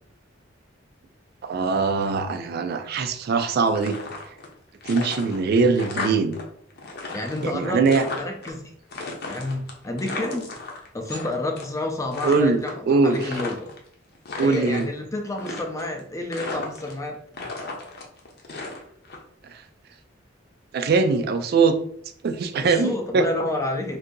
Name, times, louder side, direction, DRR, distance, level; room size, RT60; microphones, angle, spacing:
voice 1, 1.4-4.0 4.9-6.4 7.5-8.0 12.2-12.6 12.9-13.3 14.4-14.8 20.7-21.8 22.2-23.2, right 4 dB, 55° right, 8 dB, 0.3 m, -21 dB
sound 1, 3.6-4.5 4.8-6.4 6.7-8.5 8.9-11.3 11.6-11.8 12.1-13.8 14.1-14.9 15.4-16.0 16.3-17.1 17.3-19.2, left 3 dB, 55° left, 0.7 m, -34 dB
voice 2, 7.1-8.7 9.2-10.5 10.9-13.7 14.4-17.2 22.6-24.0, left 2 dB, 15° left, 3 dB, 0.5 m, -29 dB
2.7 x 2.6 x 3.7 m, 0.65 s
head